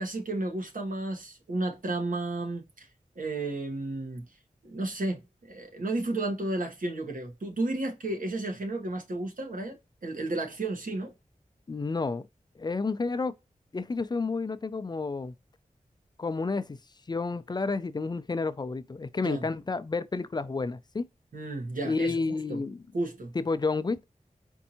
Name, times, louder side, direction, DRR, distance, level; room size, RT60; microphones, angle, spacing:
voice 1, 0.0-2.9 3.1-4.2 4.6-9.8 10.0-11.1 19.2-19.4 21.3-22.1 22.5-22.6 22.9-23.3, right 2 dB, 80° right, 1.2 m, -32 dB
voice 2, 11.7-12.2 12.6-13.3 13.7-15.3 16.2-16.8 17.1-21.1 21.8-22.8 23.3-24.0, left 3 dB, 30° left, 0.4 m, -30 dB
4.5 x 2.6 x 2.8 m
wide cardioid pair, 90°, 14 cm